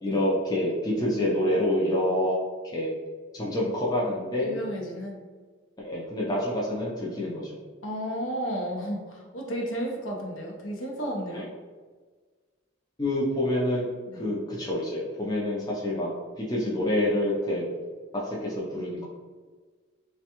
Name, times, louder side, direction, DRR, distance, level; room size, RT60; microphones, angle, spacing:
voice 1, 0.0-2.9 3.3-4.6 5.8-7.6 11.3-11.4 13.0-13.9 14.1-16.1 16.4-17.6 18.2-19.0, left 1 dB, 20° left, -5 dB, 0.5 m, -27 dB
voice 2, 4.4-5.2 7.8-11.5 14.1-14.3, equal, 65° left, 0 dB, 0.6 m, -33 dB
3.3 x 2.2 x 2.8 m, 1.4 s
head